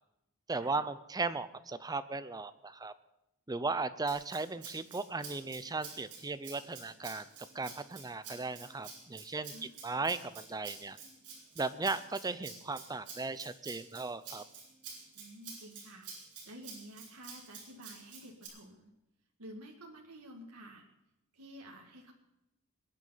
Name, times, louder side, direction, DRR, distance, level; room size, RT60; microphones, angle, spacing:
voice 1, 0.5-2.9 3.5-11.0 11.6-14.4, right 3 dB, 15° right, 13 dB, 0.6 m, -37 dB
Rattle (instrument), 4.1-18.5, right 5 dB, 55° right, 4.6 m, -49 dB
voice 2, 9.5-10.0 15.2-18.9 19.4-20.8 21.3-22.1, equal, 80° right, 1 dB, 1.9 m, -51 dB
21.0 x 9.5 x 5.7 m, 0.91 s
head